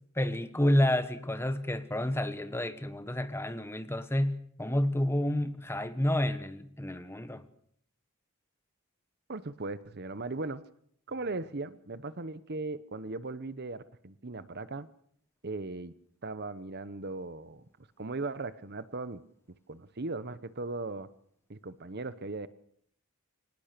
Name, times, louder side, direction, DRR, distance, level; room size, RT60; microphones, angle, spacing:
voice 1, 0.2-7.4, left 1 dB, 10° left, 1.3 m, -29 dB
voice 2, 9.3-10.6 11.1-14.9 15.4-15.9 16.2-19.2 19.7-21.1 21.5-22.5, right 3 dB, 50° right, 0.9 m, -38 dB
24.0 x 19.5 x 6.8 m
head